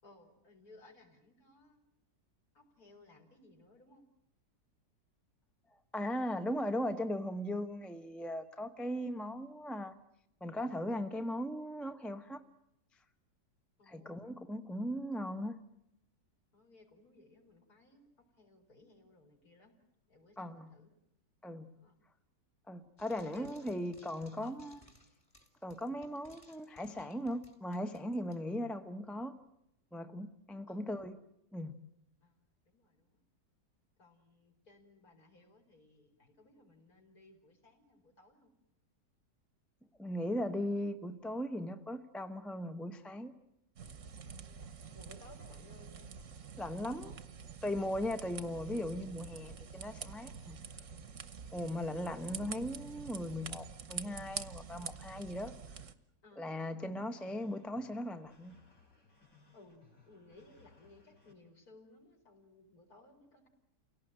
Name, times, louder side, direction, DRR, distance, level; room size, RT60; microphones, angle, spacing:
voice 1, 0.0-1.8 2.5-4.0 13.8-14.3 16.5-18.1 18.4-19.7 20.1-20.9 21.7-22.0 23.3-23.6 24.4-24.6 30.7-30.9 32.2-32.4 32.6-33.2 34.0-38.5 44.2-46.1 56.2-56.6 59.5-63.5, left 2 dB, 55° left, 3 dB, 4.9 m, -60 dB
voice 2, 5.9-9.9 10.4-12.4 13.9-15.6 20.4-20.7 21.4-21.7 22.7-24.8 25.6-29.3 29.9-31.2 31.5-31.8 40.0-43.3 46.6-47.1 47.6-50.6 51.5-55.5 56.4-58.6, left 1 dB, ahead, 8 dB, 0.8 m, -38 dB
Frying (food), 23.0-28.4, equal, 20° left, 2.9 m, -62 dB
sound 1, 43.8-55.9, right 6 dB, 50° right, 1.3 m, -47 dB
sound 2, 57.2-61.3, left 4 dB, 70° left, 5.3 m, -64 dB
29.0 x 18.0 x 8.9 m, 0.81 s
omnidirectional pair, 1.9 m